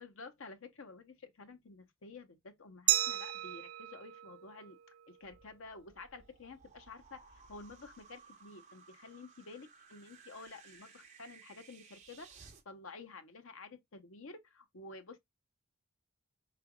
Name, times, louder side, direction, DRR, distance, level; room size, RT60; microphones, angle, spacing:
voice 1, 0.0-4.8 5.1-7.2 7.5-15.2, left 3 dB, 65° left, 0.8 m, -51 dB
Glass, 2.9-5.6, right 15 dB, 70° right, 0.5 m, -35 dB
sound 1, 5.2-12.6, right 5 dB, 35° right, 0.9 m, -59 dB
4.9 x 3.3 x 2.2 m
head